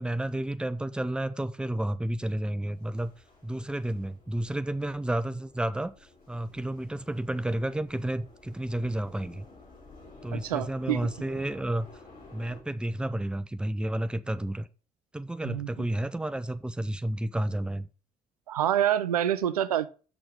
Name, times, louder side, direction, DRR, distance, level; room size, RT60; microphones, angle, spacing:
voice 1, 0.0-3.1 3.4-5.9 6.3-9.4 10.2-11.9 12.3-14.7 15.1-17.9, right 1 dB, 5° right, 0.6 m, -31 dB
sound 1, 2.7-12.6, left 3 dB, 50° left, 4.4 m, -53 dB
voice 2, 10.3-11.0 15.4-15.7 18.5-19.9, right 11 dB, 80° right, 0.4 m, -27 dB
6.3 x 6.2 x 4.9 m
figure-of-eight pair, 50°, 19 cm